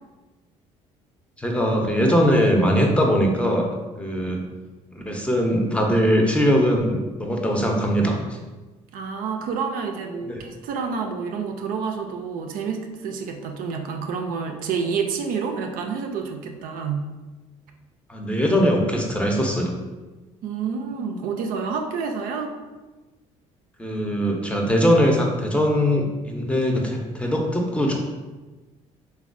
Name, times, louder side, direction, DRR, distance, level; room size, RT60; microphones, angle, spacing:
voice 1, 1.4-3.7 4.0-4.4 4.9-6.9 7.2-8.2 10.3-10.4 18.1-19.7 23.8-28.0, equal, 5° left, 0 dB, 0.6 m, -21 dB
voice 2, 8.9-17.1 20.4-22.5, right 5 dB, 65° right, 3 dB, 0.4 m, -28 dB
3.3 x 2.2 x 2.5 m, 1.2 s
hypercardioid pair, 65°, 16 cm